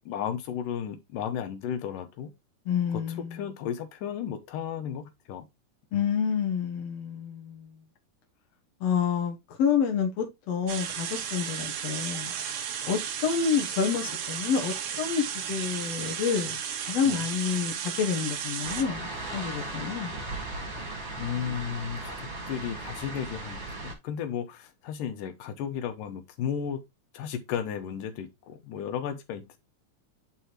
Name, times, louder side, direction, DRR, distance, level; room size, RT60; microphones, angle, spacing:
voice 1, 0.1-2.3 2.9-5.5 5.9-6.1 17.0-17.2 21.2-26.8 27.1-29.6, left 8 dB, 90° left, 2.7 m, -34 dB
voice 2, 2.7-3.4 5.9-7.8 8.8-20.1, left 7 dB, 60° left, 2.1 m, -29 dB
sound 1, 10.7-18.8, right 8 dB, 70° right, 1.3 m, -34 dB
sound 2, 18.6-23.9, right 2 dB, 25° right, 1.7 m, -37 dB
9.7 x 4.5 x 2.9 m
omnidirectional pair, 3.7 m